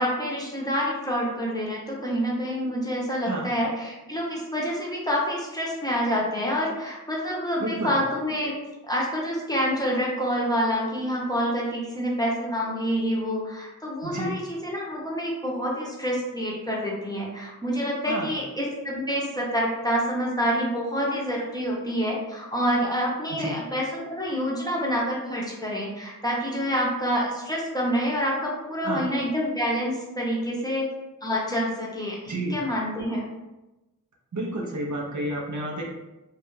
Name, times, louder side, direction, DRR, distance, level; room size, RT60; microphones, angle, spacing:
voice 1, 0.0-8.6 8.8-30.9 31.2-33.2, equal, 10° left, -4 dB, 0.6 m, -27 dB
voice 2, 7.6-7.9 14.0-14.3 18.0-18.3 23.3-23.6 28.8-29.1 32.3-32.6 34.3-35.8, right 1 dB, 55° right, -1 dB, 0.5 m, -30 dB
2.3 x 2.1 x 3.0 m, 1.0 s
wide cardioid pair, 40°, 35 cm